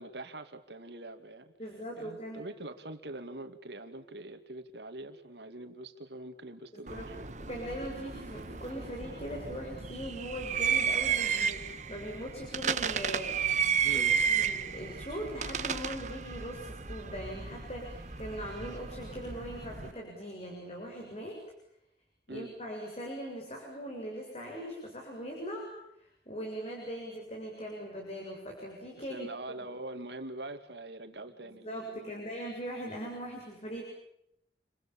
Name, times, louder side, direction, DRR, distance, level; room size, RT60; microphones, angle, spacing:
voice 1, 0.0-1.5 2.0-7.3 13.8-14.2 22.3-22.5 29.0-32.2, right 2 dB, 75° right, 7 dB, 2.6 m, -44 dB
voice 2, 1.6-2.4 6.7-7.1 7.4-13.6 13.9-21.4 22.3-29.3 31.4-33.8, equal, 35° left, 1 dB, 7.3 m, -40 dB
sound 1, 6.9-19.9, right 7 dB, 45° right, 1.5 m, -33 dB
30.0 x 24.5 x 7.3 m, 0.79 s
head